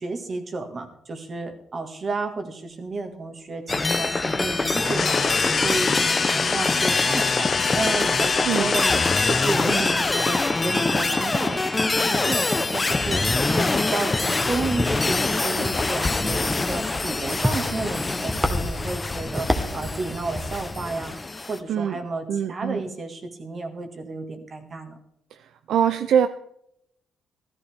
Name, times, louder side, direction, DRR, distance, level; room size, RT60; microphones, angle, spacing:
voice 1, 0.0-5.3 5.6-9.0 9.3-13.2 13.5-21.2 21.5-25.0, right 3 dB, 40° right, 5 dB, 1.8 m, -32 dB
Sounds Crazy, 3.7-21.6, left 3 dB, 20° left, 0.7 m, -24 dB
sound 1, 4.7-10.4, left 6 dB, 45° left, 0.4 m, -26 dB
voice 2, 8.5-8.8 9.7-9.8 21.7-22.0 22.3-22.8 25.3-26.3, right 8 dB, 75° right, 10 dB, 0.5 m, -24 dB
sound 2, 15.3-21.0, equal, ahead, 1.4 m, -31 dB
14.0 x 13.5 x 3.5 m, 0.76 s
cardioid pair, 90°, 0 cm